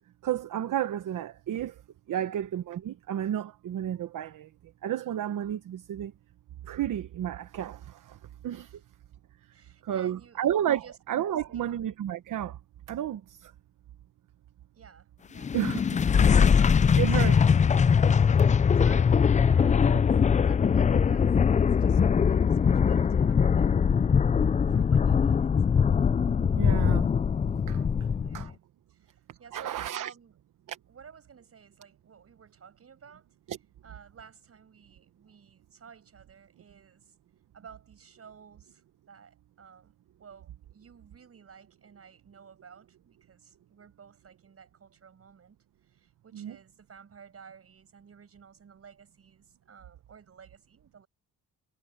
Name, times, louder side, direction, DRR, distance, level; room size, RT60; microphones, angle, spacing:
voice 1, 0.2-1.8 2.1-4.5 4.8-6.1 6.6-8.2 8.4-8.8 9.8-12.6 12.9-13.5 15.5-15.8 17.0-17.4 26.6-27.1 27.7-27.9 28.3-28.5 29.5-30.1 30.7-30.8 33.5-33.6 46.3-46.6, right 11 dB, 70° right, 1.1 m, -31 dB
voice 2, 9.5-11.0 11.5-11.8 14.7-17.7 18.2-19.2 19.4-23.8 24.7-25.6 28.0-28.6 28.9-30.4 30.9-33.3 33.8-37.1 37.5-39.9 40.2-45.6 45.8-51.1, right 6 dB, 45° right, 7.1 m, -53 dB
sound 1, 15.4-28.5, left 6 dB, 25° left, 0.4 m, -22 dB
cardioid pair, 120°, 33 cm